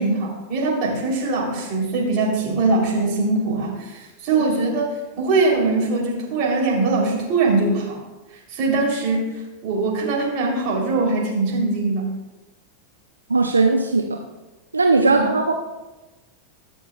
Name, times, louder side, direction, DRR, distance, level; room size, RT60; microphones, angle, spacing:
voice 1, 0.0-8.0 8.5-9.3 9.6-12.1 15.0-15.2, right 3 dB, 40° right, -2 dB, 3.4 m, -22 dB
voice 2, 13.3-14.2 14.7-15.5, right 3 dB, 80° right, 3 dB, 0.6 m, -18 dB
21.0 x 7.2 x 2.4 m, 1.1 s
figure-of-eight pair, 90°, 0 cm